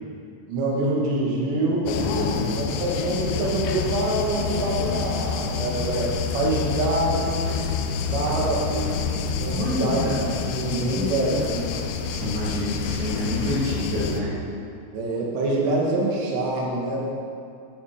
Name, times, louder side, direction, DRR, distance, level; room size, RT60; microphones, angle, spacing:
voice 1, 0.5-2.0 2.6-7.4 8.1-8.9 9.3-11.7 14.9-17.1, right 2 dB, 75° right, -3 dB, 4.1 m, -25 dB
sound 1, 1.9-14.2, left 6 dB, 75° left, 2.5 m, -28 dB
voice 2, 2.0-2.5 9.5-10.3 10.9-11.5 12.1-14.3, left 1 dB, 45° right, -8 dB, 3.9 m, -28 dB
13.5 x 10.5 x 5.1 m, 2.4 s
omnidirectional pair, 5.1 m